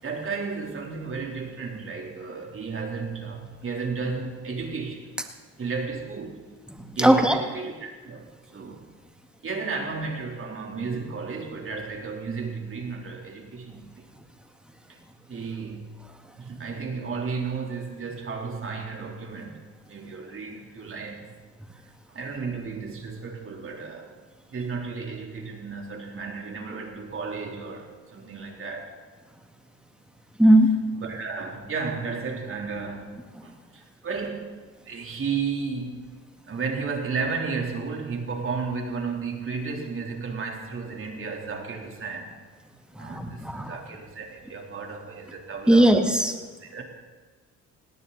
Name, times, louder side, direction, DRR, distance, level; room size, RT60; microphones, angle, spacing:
voice 1, 0.0-5.1 5.6-6.5 7.0-8.9 9.4-14.1 14.9-15.0 15.3-16.0 16.4-21.4 21.8-24.1 24.5-29.0 31.0-33.1 33.4-36.1 36.5-42.3 43.0-45.9 46.6-46.8, right 4 dB, 45° right, 1 dB, 3.6 m, -33 dB
voice 2, 6.7-7.4 30.4-30.8 43.0-43.7 45.7-46.3, right 1 dB, 5° right, 4 dB, 2.0 m, -19 dB
18.5 x 18.5 x 4.2 m, 1.4 s
cardioid pair, 90°, 30 cm